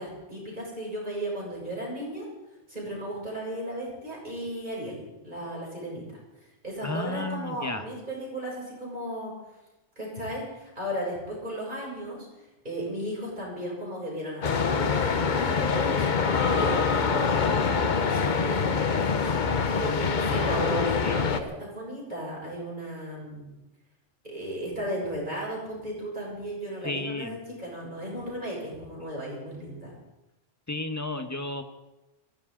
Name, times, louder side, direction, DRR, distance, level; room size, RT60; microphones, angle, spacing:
voice 1, 0.0-2.3 2.7-6.0 6.6-9.3 10.0-12.3 12.6-17.5 17.8-18.8 19.7-23.4 24.2-29.9, right 1 dB, 40° right, -4 dB, 7.2 m, -35 dB
voice 2, 6.8-7.9 20.9-21.2 26.8-27.4 30.7-31.6, left 2 dB, 15° left, 6 dB, 1.2 m, -32 dB
sound 1, 14.4-21.4, left 5 dB, 45° left, 0.9 m, -25 dB
23.0 x 16.0 x 3.9 m, 1.0 s
omnidirectional pair, 1.3 m